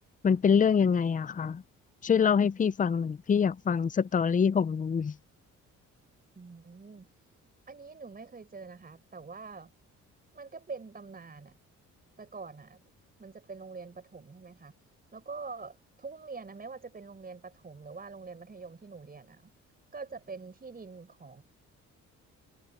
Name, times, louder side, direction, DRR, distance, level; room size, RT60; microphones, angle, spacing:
voice 1, 0.2-1.6 2.0-5.1, left 6 dB, 25° left, 0.6 m, -25 dB
voice 2, 6.3-7.1 7.7-9.7 10.3-11.5 12.2-12.8 13.2-14.7 15.1-19.5 19.9-21.4, right 4 dB, 30° right, 4.9 m, -44 dB
cardioid pair, 90°, 30 cm